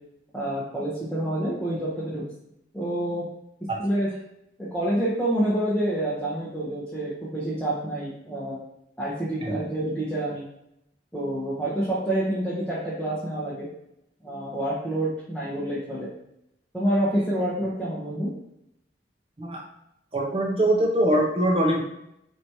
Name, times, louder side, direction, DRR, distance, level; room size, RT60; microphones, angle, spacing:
voice 1, 0.3-2.2 2.7-3.2 3.8-4.1 4.6-8.6 9.0-10.4 11.1-13.7 14.2-16.1 16.7-18.3, right 1 dB, 5° left, -10 dB, 0.9 m, -27 dB
voice 2, 20.1-21.8, right 1 dB, 30° right, -1 dB, 0.8 m, -22 dB
4.5 x 3.0 x 2.7 m, 0.80 s
head